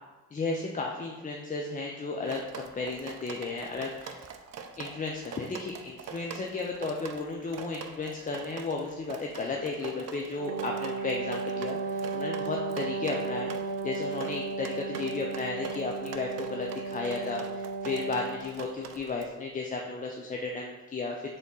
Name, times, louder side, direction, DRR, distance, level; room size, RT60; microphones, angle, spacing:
voice 1, 0.3-4.3 4.8-21.4, left 3 dB, 20° left, 0 dB, 0.5 m, -34 dB
Drip, 2.3-19.3, right 7 dB, 40° right, 0.5 m, -43 dB
Wind instrument woodwind instrument, 10.3-18.5, right 4 dB, 90° right, 0.7 m, -35 dB
3.7 x 3.5 x 4.0 m, 1.1 s
hypercardioid pair, 40°, 41 cm